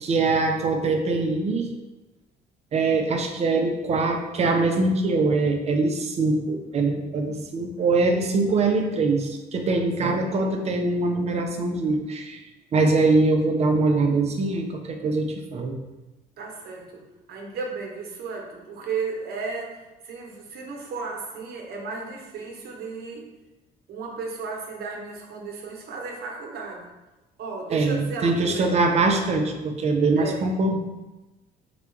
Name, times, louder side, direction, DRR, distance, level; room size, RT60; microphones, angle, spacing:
voice 1, 0.0-1.7 2.7-12.4 12.7-15.7 27.7-30.8, right 3 dB, 40° right, 3 dB, 0.6 m, -23 dB
voice 2, 10.2-10.5 16.4-17.0 17.3-23.3 23.9-26.8 27.4-28.8 30.2-30.5, right 4 dB, 65° right, 0 dB, 1.0 m, -34 dB
4.0 x 2.3 x 4.5 m, 1.1 s
cardioid pair, 110°, 17 cm